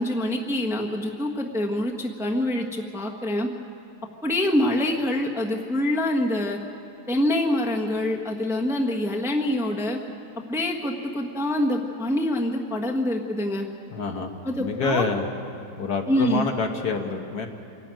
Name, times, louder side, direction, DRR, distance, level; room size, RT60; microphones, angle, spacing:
voice 1, 0.0-3.5 4.2-6.6 7.1-10.0 10.5-13.7 14.4-15.1 16.1-16.5, left 1 dB, ahead, 0 dB, 1.2 m, -25 dB
voice 2, 13.9-15.3 15.7-17.5, left 4 dB, 60° left, 4 dB, 1.8 m, -27 dB
26.5 x 12.0 x 9.2 m, 2.7 s
omnidirectional pair, 2.0 m